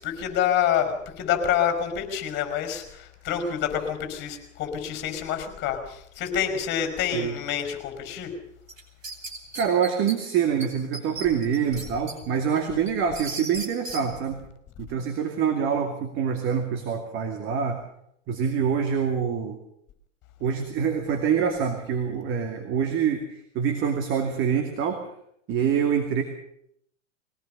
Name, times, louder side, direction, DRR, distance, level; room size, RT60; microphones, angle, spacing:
voice 1, 0.0-8.3, left 9 dB, 30° left, 7 dB, 5.3 m, -27 dB
sound 1, 8.7-10.2 10.6-10.7 10.9-12.2 12.6-14.0, right 2 dB, 90° right, 4.4 m, -36 dB
voice 2, 9.5-14.4 14.8-17.8 18.3-19.6 20.4-25.1 25.5-26.2, right 7 dB, 30° right, 6 dB, 2.4 m, -25 dB
22.0 x 18.0 x 6.8 m, 0.72 s
hypercardioid pair, 110°, 38 cm